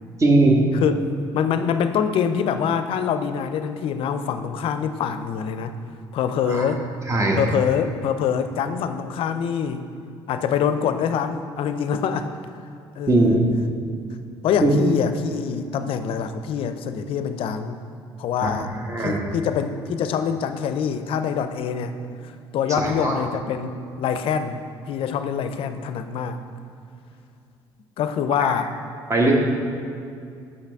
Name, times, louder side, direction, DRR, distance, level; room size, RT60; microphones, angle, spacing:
voice 1, 0.2-0.6 6.5-6.7 7.1-7.4 13.1-13.4 14.6-14.7 18.4-18.5 18.9-19.2 22.8-23.1 28.4-28.5 29.1-29.3, right 2 dB, 30° right, 0 dB, 1.2 m, -19 dB
voice 2, 1.3-5.8 6.1-6.8 7.3-9.9 10.3-12.3 13.0-13.4 14.4-17.8 18.2-18.7 19.0-21.9 22.5-24.6 24.9-26.4 28.0-28.7, left 7 dB, 65° left, 9 dB, 0.4 m, -25 dB
6.6 x 5.8 x 3.5 m, 2.4 s
supercardioid pair, 75°, 10 cm